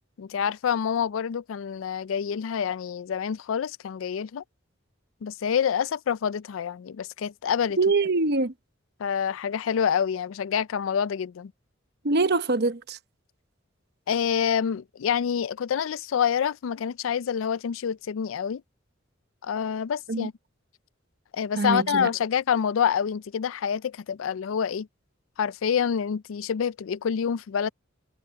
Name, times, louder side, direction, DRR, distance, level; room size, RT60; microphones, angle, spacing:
voice 1, 0.2-4.4 5.2-7.8 9.0-11.5 14.1-18.6 19.4-20.3 21.3-24.9 25.4-27.7, left 7 dB, 90° left, 0.4 m, -27 dB
voice 2, 7.8-8.5 12.0-13.0 20.1-20.3 21.6-22.1, right 3 dB, 55° right, 1.0 m, -24 dB
head